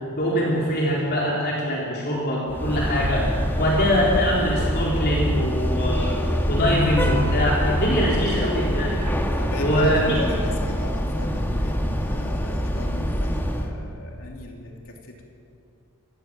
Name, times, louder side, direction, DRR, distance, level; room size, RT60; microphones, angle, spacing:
voice 1, 0.1-6.2 6.5-8.9 9.6-10.2, equal, 50° left, -4 dB, 3.9 m, -23 dB
sound 1, 2.5-13.7, equal, 10° left, 1.8 m, -25 dB
voice 2, 9.4-15.2, left 2 dB, 70° left, 1 dB, 3.1 m, -37 dB
26.5 x 16.0 x 7.7 m, 2.5 s
head